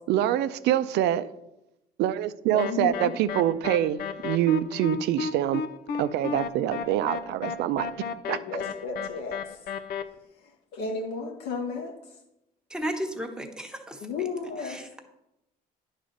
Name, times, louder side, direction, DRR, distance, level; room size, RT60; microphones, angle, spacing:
voice 1, 0.1-1.3 2.0-5.6 6.0-7.9 8.3-8.4, right 12 dB, 80° right, 13 dB, 0.5 m, -25 dB
voice 2, 2.5-3.1 8.3-9.6 10.4-12.2 14.0-14.8, left 4 dB, 90° left, 0 dB, 2.0 m, -34 dB
sound 1, 2.6-10.0, left 6 dB, 65° left, 0.7 m, -33 dB
voice 3, 12.7-14.0 14.6-15.0, equal, 5° right, 3 dB, 1.2 m, -34 dB
9.5 x 4.1 x 6.5 m, 0.88 s
cardioid pair, 110°, 17 cm